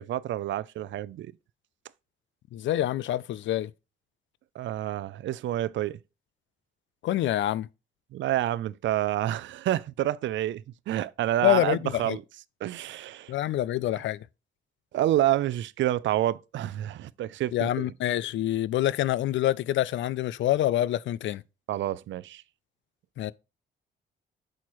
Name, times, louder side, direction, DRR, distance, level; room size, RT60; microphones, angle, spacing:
voice 1, 0.0-1.3 4.6-6.0 8.1-12.2 12.6-13.3 14.9-17.9 21.7-22.4, right 13 dB, 85° right, 0.4 m, -28 dB
voice 2, 2.5-3.7 7.0-7.7 11.4-12.2 13.3-14.2 17.5-21.4 23.2-23.3, left 13 dB, 85° left, 0.4 m, -26 dB
8.4 x 6.4 x 3.1 m
cardioid pair, 105°, 19 cm